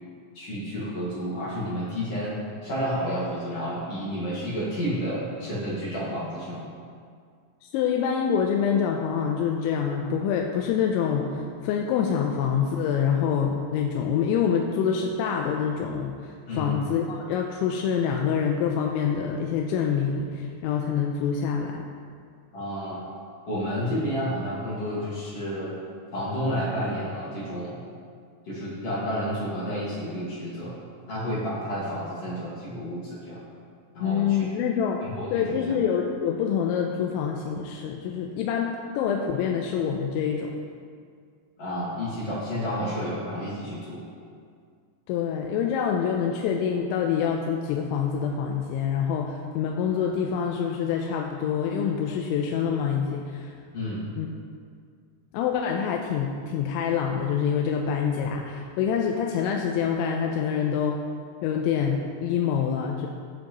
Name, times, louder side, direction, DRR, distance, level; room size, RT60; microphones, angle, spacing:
voice 1, 0.3-2.4 2.6-6.6 16.5-16.8 22.5-23.1 23.5-25.8 26.1-27.8 28.5-30.8 31.1-33.4 33.9-34.5 35.0-35.6 41.6-44.0 53.7-54.1, equal, 45° left, -7 dB, 2.2 m, -30 dB
voice 2, 7.7-21.8 34.0-35.0 35.3-40.5 45.1-53.5 54.2-54.3 55.3-61.0 61.4-63.1, left 7 dB, 85° left, 1 dB, 3.0 m, -26 dB
16.5 x 7.5 x 3.1 m, 2.1 s
omnidirectional pair, 5.3 m